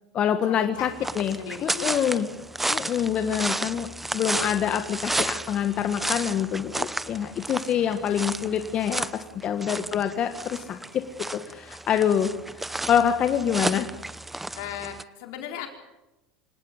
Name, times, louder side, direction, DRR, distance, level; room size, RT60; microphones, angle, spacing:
voice 1, 0.1-0.9 1.2-2.3 2.7-13.9, left 9 dB, 40° left, 7 dB, 1.7 m, -26 dB
sound 1, 0.8-15.0, right 2 dB, 10° right, 0.9 m, -32 dB
voice 2, 1.1-2.2 4.1-4.2 7.7-8.0 9.6-10.0 14.5-15.7, left 9 dB, 75° left, 4 dB, 4.8 m, -38 dB
26.0 x 18.0 x 8.2 m, 1.0 s
supercardioid pair, 100°, 3 cm